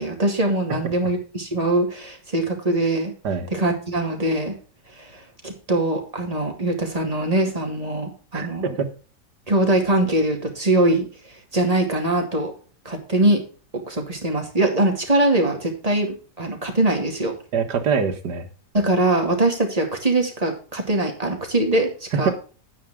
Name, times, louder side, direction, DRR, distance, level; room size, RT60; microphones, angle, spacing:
voice 1, 0.0-3.1 3.5-4.6 5.0-8.7 9.5-11.1 11.5-12.5 12.8-13.4 13.9-17.3 18.7-22.3, right 2 dB, 20° right, 2 dB, 2.6 m, -22 dB
voice 2, 8.3-8.9 17.5-18.5 22.1-22.3, right 6 dB, 80° right, 7 dB, 2.0 m, -24 dB
9.9 x 9.3 x 3.6 m, 0.38 s
omnidirectional pair, 1.8 m